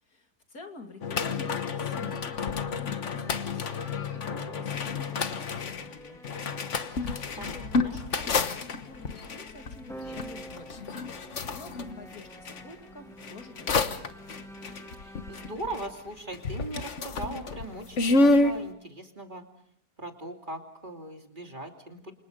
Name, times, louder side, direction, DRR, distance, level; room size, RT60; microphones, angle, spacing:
voice 1, 0.0-6.7 7.0-14.3, left 3 dB, 70° left, 4 dB, 3.0 m, -48 dB
sound 1, 1.0-12.6 13.2-16.1 16.3-18.6, left 3 dB, 50° left, 1.5 m, -30 dB
sound 2, 1.6-16.9, right 1 dB, ahead, 1.4 m, -48 dB
voice 2, 7.4-8.0 15.0-19.4 20.0-22.1, right 2 dB, 30° right, 3 dB, 3.0 m, -39 dB
29.5 x 26.5 x 5.3 m, 0.66 s
omnidirectional pair, 1.6 m